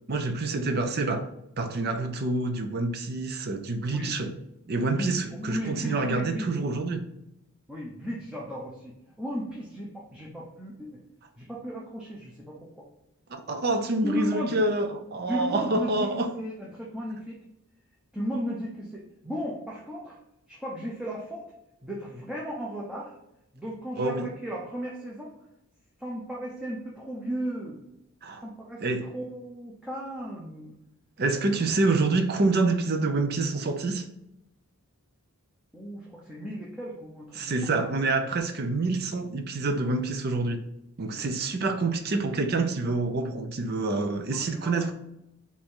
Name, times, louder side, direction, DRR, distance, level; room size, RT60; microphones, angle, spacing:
voice 1, 0.1-1.3 1.6-4.3 4.7-7.1 13.3-16.3 24.0-24.3 28.2-28.4 28.8-29.1 31.2-34.1 37.3-40.6 41.0-44.9, right 3 dB, 45° right, 0.5 m, -27 dB
voice 2, 4.9-6.5 7.7-11.0 11.4-12.8 14.0-14.6 15.3-17.4 18.1-20.2 20.5-21.5 21.8-23.1 23.5-25.3 26.0-27.8 28.4-30.8 35.7-37.6 41.2-41.3 44.3-44.9, equal, 5° right, 0.7 m, -35 dB
4.8 x 2.7 x 3.7 m
head